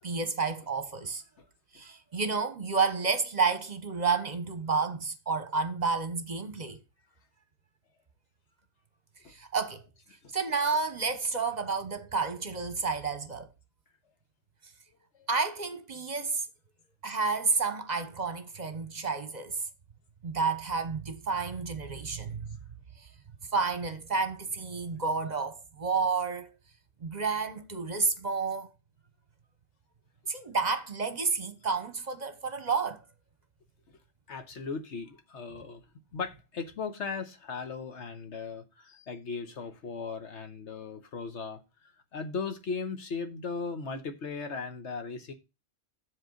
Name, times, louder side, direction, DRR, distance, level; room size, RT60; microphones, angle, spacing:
voice 1, 0.0-1.2 1.7-6.8 9.3-9.8 10.3-13.5 15.3-16.5 17.0-19.6 20.2-22.6 23.5-26.5 27.0-28.7 30.3-33.0, right 4 dB, 40° right, 1.0 m, -30 dB
voice 2, 34.3-35.8 36.1-41.6 42.1-45.3, left 4 dB, 65° left, 1.3 m, -37 dB
7.8 x 7.7 x 3.9 m
omnidirectional pair, 1.3 m